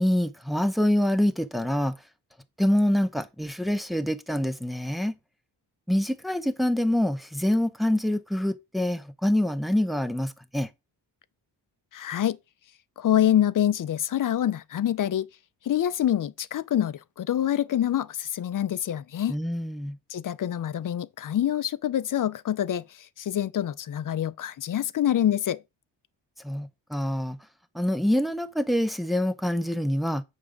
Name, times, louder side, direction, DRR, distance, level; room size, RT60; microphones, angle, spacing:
voice 1, 0.0-2.0 2.6-5.2 5.9-10.7 19.3-20.0 26.4-27.4 27.7-30.2, left 1 dB, ahead, 0.8 m, -25 dB
voice 2, 11.9-12.4 13.0-15.3 15.7-19.3 20.1-22.8 23.2-25.6, left 11 dB, 50° left, 0.6 m, -26 dB
8.3 x 3.6 x 6.5 m
cardioid pair, 110°, 42 cm